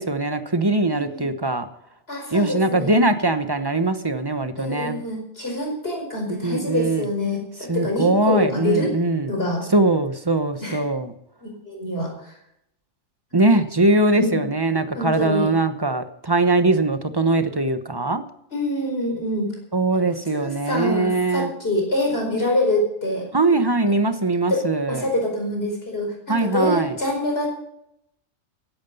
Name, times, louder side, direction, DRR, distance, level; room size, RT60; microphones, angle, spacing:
voice 1, 0.0-1.7 2.3-5.0 6.3-7.1 7.7-9.3 9.7-11.1 13.3-18.2 19.7-21.5 23.3-25.1 26.3-27.0, right 2 dB, 20° right, 9 dB, 0.9 m, -21 dB
voice 2, 0.9-1.3 2.1-2.9 4.6-8.9 9.3-9.6 10.6-10.8 11.4-12.3 14.1-14.4 14.9-15.5 18.5-19.5 19.9-20.0 20.3-23.3 23.9-24.0 24.5-24.6 24.9-27.5, left 1 dB, 45° left, 1 dB, 5.0 m, -25 dB
16.0 x 11.5 x 5.4 m, 0.76 s
omnidirectional pair, 1.4 m